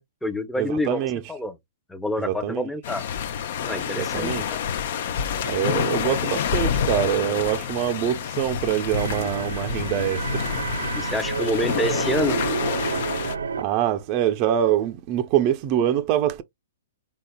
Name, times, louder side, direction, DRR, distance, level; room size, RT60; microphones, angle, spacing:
voice 1, 0.0-1.0 1.3-1.5 1.9-3.0 3.6-4.6 10.9-12.4, left 1 dB, 5° left, 0.7 m, -27 dB
voice 2, 0.6-1.2 2.2-2.7 4.0-4.5 5.4-10.5 13.6-16.4, right 11 dB, 40° right, 0.5 m, -24 dB
sound 1, 2.8-13.4, left 8 dB, 55° left, 0.6 m, -28 dB
sound 2, 8.9-13.9, right 5 dB, 80° right, 0.5 m, -29 dB
4.0 x 3.9 x 2.2 m
hypercardioid pair, 125°, 0 cm